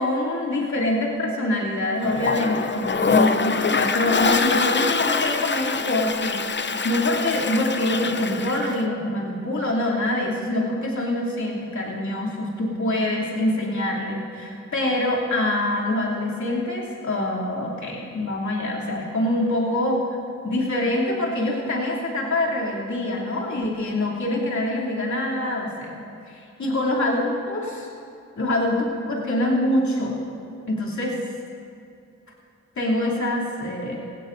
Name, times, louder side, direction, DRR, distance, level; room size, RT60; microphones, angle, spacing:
voice 1, 0.0-20.0 20.4-26.0 26.3-27.9 28.4-30.2 30.7-31.2 32.8-34.0, left 1 dB, 70° left, -5 dB, 3.1 m, -25 dB
Toilet flush, 2.0-8.8, left 4 dB, 40° left, 0.7 m, -24 dB
19.0 x 16.0 x 2.7 m, 2.5 s
cardioid pair, 40°, 30 cm